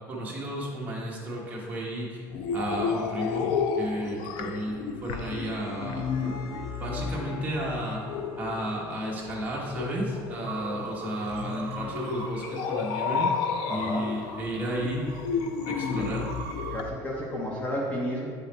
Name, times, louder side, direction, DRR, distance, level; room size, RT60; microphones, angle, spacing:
voice 1, 0.1-2.2 2.5-3.5 3.8-6.4 6.7-8.0 8.4-13.3 13.7-15.1 15.7-16.2, right 1 dB, 20° right, -4 dB, 1.1 m, -33 dB
sound 1, 2.3-16.9, left 6 dB, 85° left, 0.5 m, -32 dB
sound 2, 4.8-9.8, left 2 dB, 45° left, 1.2 m, -48 dB
sound 3, 10.4-16.8, right 8 dB, 50° right, 0.4 m, -43 dB
voice 2, 13.7-14.1 16.7-18.3, equal, 20° left, -3 dB, 0.7 m, -32 dB
8.2 x 4.1 x 4.0 m, 2.1 s
cardioid pair, 175°, 8 cm